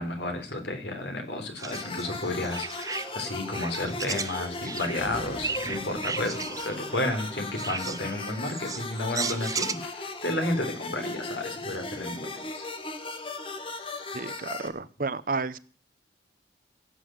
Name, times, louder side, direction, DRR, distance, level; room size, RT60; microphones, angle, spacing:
voice 1, 0.0-12.7, left 1 dB, 65° left, 5 dB, 3.8 m, -32 dB
sound 1, 1.6-9.7, right 5 dB, 20° right, 0.7 m, -36 dB
sound 2, 1.7-14.7, left 3 dB, 30° left, 1.8 m, -37 dB
sound 3, 4.8-7.7, left 1 dB, 50° left, 5.1 m, -45 dB
voice 2, 14.1-15.6, right 4 dB, 50° right, 16 dB, 0.7 m, -31 dB
16.0 x 8.0 x 7.8 m, 0.42 s
head